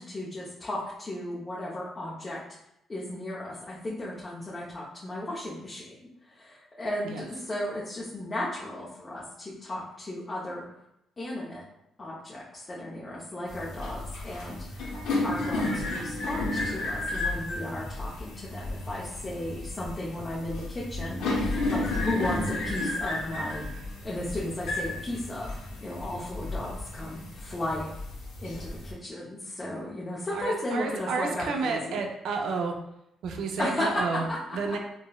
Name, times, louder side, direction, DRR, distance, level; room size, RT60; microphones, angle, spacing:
voice 1, 0.0-2.4 2.9-10.6 11.2-11.6 12.0-14.9 15.2-23.7 24.0-27.9 28.4-32.0 33.6-34.0 34.3-34.8, left 1 dB, 30° left, -6 dB, 0.6 m, -35 dB
sound 1, 13.5-28.9, left 2 dB, 85° left, 0.7 m, -33 dB
voice 2, 30.3-32.7 33.2-34.3 34.5-34.8, right 4 dB, 75° right, 3 dB, 0.4 m, -30 dB
3.7 x 2.0 x 2.3 m, 0.80 s
cardioid pair, 90°, 0 cm